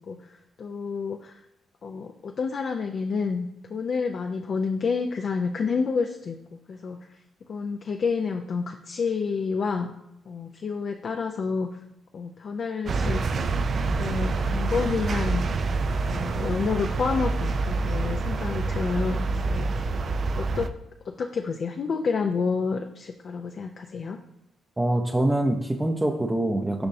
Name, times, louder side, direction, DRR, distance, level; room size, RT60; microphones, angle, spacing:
voice 1, 0.0-1.4 1.8-6.4 6.7-7.0 7.5-9.9 10.3-11.7 12.1-13.5 13.8-15.4 16.1-19.9 20.4-20.7 21.0-24.2, left 5 dB, 55° left, 4 dB, 0.5 m, -29 dB
sound 1, 12.9-20.7, right 3 dB, 55° right, 0.4 m, -27 dB
voice 2, 24.8-26.9, right 1 dB, 15° right, 1 dB, 0.6 m, -24 dB
6.9 x 5.2 x 2.7 m, 0.87 s
supercardioid pair, 65°, 0 cm